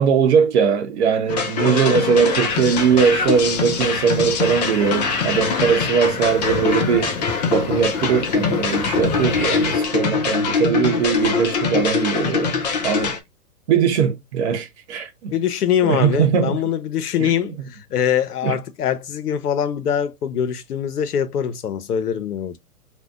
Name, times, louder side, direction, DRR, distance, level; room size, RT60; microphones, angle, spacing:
voice 1, 0.0-7.1 7.5-12.5 12.8-13.2 13.7-15.3 15.8-16.6 17.2-17.3 18.4-18.6, right 7 dB, 50° right, 0.8 m, -20 dB
sound 1, 1.3-13.2, left 5 dB, 30° left, 0.4 m, -23 dB
sound 2, 2.5-9.8, left 5 dB, 70° left, 1.1 m, -31 dB
voice 2, 15.3-22.6, left 9 dB, 85° left, 0.7 m, -23 dB
2.7 x 2.1 x 3.5 m
hypercardioid pair, 135°, 45 cm